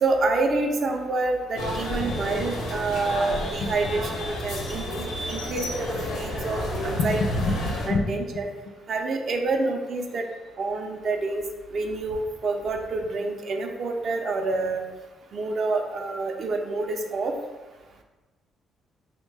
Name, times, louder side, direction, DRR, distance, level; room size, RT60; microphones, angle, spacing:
voice 1, 0.0-5.9 6.1-7.2 7.9-8.5 8.9-10.2 10.6-11.4 11.7-14.8 15.3-17.3, right 3 dB, 55° right, 4 dB, 0.4 m, -27 dB
sound 1, 1.5-7.9, equal, 90° left, 0.7 m, -30 dB
voice 2, 7.4-8.1 8.3-8.4, left 3 dB, 65° left, 5 dB, 0.3 m, -28 dB
3.2 x 2.1 x 3.3 m, 1.2 s
cardioid pair, 90°, 0 cm